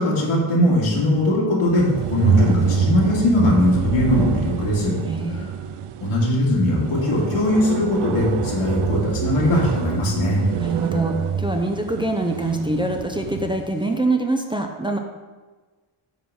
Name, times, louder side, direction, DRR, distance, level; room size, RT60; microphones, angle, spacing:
voice 1, 0.0-4.9 5.3-5.4 6.0-10.4, left 1 dB, 85° left, -4 dB, 2.5 m, -20 dB
sound 1, 1.7-13.7, right 7 dB, 80° right, 0.6 m, -26 dB
voice 2, 5.1-5.5 10.6-15.0, right 2 dB, 10° right, 3 dB, 0.6 m, -24 dB
9.4 x 3.9 x 6.2 m, 1.3 s
wide cardioid pair, 125°, 50 cm